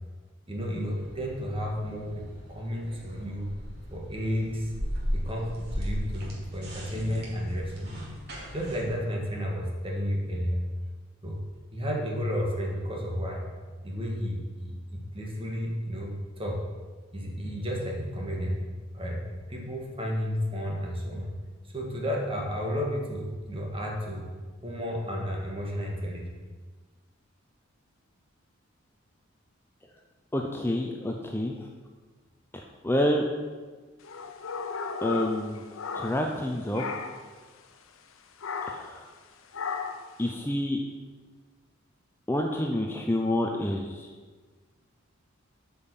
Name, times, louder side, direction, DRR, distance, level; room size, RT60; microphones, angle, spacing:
voice 1, 0.5-3.5 3.9-4.7 5.1-8.0 8.5-10.6 11.2-11.4 11.7-13.4 13.8-16.6 17.1-18.6 18.9-19.2 19.5-21.3 21.7-24.3 24.6-26.3, equal, 30° right, -1 dB, 1.8 m, -32 dB
sound 1, 0.5-8.9, equal, 55° right, 2.4 m, -37 dB
voice 2, 30.3-31.6 32.8-33.2 35.0-35.6 35.9-36.8 38.7-39.1 40.2-40.8 42.3-44.0, left 1 dB, 10° left, 2 dB, 0.6 m, -28 dB
sound 2, 34.0-36.4 36.7-37.3 38.4-39.0 39.5-40.1, left 5 dB, 85° left, 0.7 m, -35 dB
8.5 x 5.6 x 7.0 m, 1.4 s
head